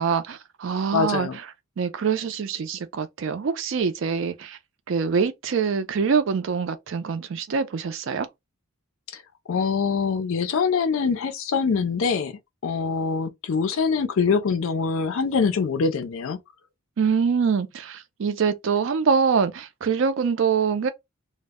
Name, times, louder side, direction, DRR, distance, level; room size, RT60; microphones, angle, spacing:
voice 1, 0.0-1.3 1.8-4.6 4.9-8.3 17.0-20.9, right 6 dB, 60° right, 0.4 m, -24 dB
voice 2, 0.9-1.4 9.1-9.2 9.5-16.4, left 5 dB, 65° left, 0.4 m, -24 dB
2.1 x 2.0 x 3.4 m
head